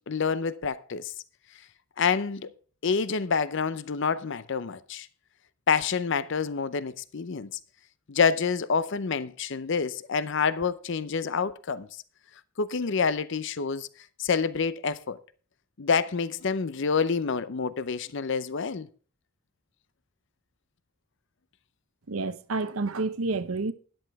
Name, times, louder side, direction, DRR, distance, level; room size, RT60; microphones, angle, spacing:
voice 1, 0.1-1.1 2.0-2.5 2.8-5.1 5.7-7.6 8.1-11.9 12.6-13.9 14.2-15.2 15.8-18.9, left 5 dB, 60° left, 0.6 m, -27 dB
voice 2, 22.1-23.7, right 3 dB, 85° right, 0.8 m, -29 dB
13.0 x 11.0 x 3.5 m
head